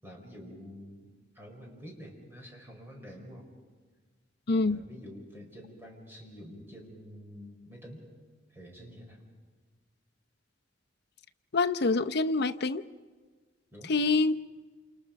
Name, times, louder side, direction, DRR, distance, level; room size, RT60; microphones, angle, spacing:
voice 1, 0.0-1.0 1.3-3.4 4.5-8.0 8.5-9.2 13.7-13.9, equal, 15° right, 0 dB, 4.9 m, -47 dB
voice 2, 4.5-4.8 11.5-12.8 13.9-14.3, left 3 dB, 60° left, 8 dB, 0.7 m, -26 dB
28.5 x 28.0 x 5.2 m, 1.4 s
head